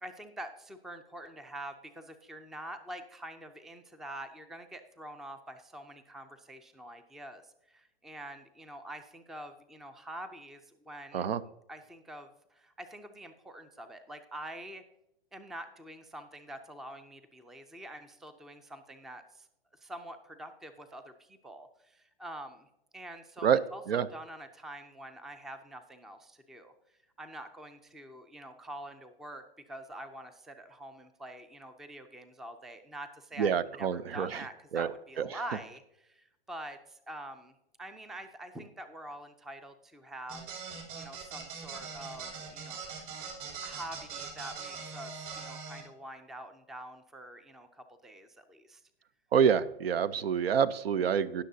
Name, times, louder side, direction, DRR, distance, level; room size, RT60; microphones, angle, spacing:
voice 1, 0.0-11.3 11.7-14.8 15.3-19.5 19.8-22.7 22.9-26.7 27.2-42.8 43.6-48.8, right 1 dB, ahead, 10 dB, 0.3 m, -46 dB
voice 2, 33.4-34.4 34.7-34.9 35.2-35.3 49.3-51.4, right 7 dB, 90° right, 17 dB, 0.7 m, -27 dB
sound 1, 40.3-45.8, right 5 dB, 60° right, 3.4 m, -42 dB
19.5 x 6.6 x 2.7 m, 0.85 s
hypercardioid pair, 130°, 29 cm